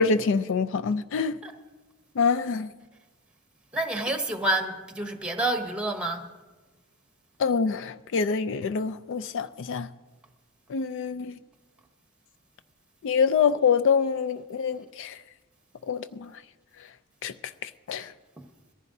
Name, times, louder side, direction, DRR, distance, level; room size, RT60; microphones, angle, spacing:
voice 1, 0.0-1.4 2.2-2.7 7.4-9.9 10.7-11.3 13.0-15.1 15.9-16.3 17.2-17.3 17.9-18.1, left 5 dB, 60° left, 0.4 m, -25 dB
voice 2, 3.7-6.2, right 1 dB, 5° right, 1.0 m, -28 dB
21.5 x 14.5 x 2.7 m
head